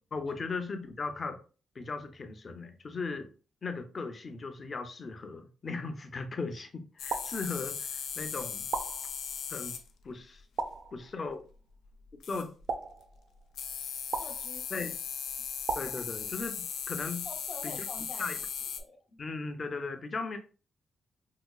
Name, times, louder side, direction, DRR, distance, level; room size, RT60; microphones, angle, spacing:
voice 1, 0.1-1.4 1.7-3.3 3.6-8.7 9.5-9.8 10.0-10.4 10.9-11.4 12.3-12.5 14.7-14.9 15.8-17.3 17.6-17.8 18.2-18.4 19.2-20.4, left 4 dB, 30° left, 7 dB, 0.4 m, -37 dB
sound 1, 7.0-9.9 12.2-12.6 13.5-18.8, left 7 dB, 90° left, 0.4 m, -38 dB
sound 2, 7.1-8.0 8.7-9.6 10.6-11.4 12.7-13.6 14.1-14.9 15.7-16.7, right 4 dB, 55° right, 0.4 m, -38 dB
voice 2, 14.2-14.9 17.2-18.2 18.8-19.2, left 3 dB, 65° left, -4 dB, 0.8 m, -46 dB
4.7 x 2.2 x 2.2 m, 0.36 s
wide cardioid pair, 175°, 0 cm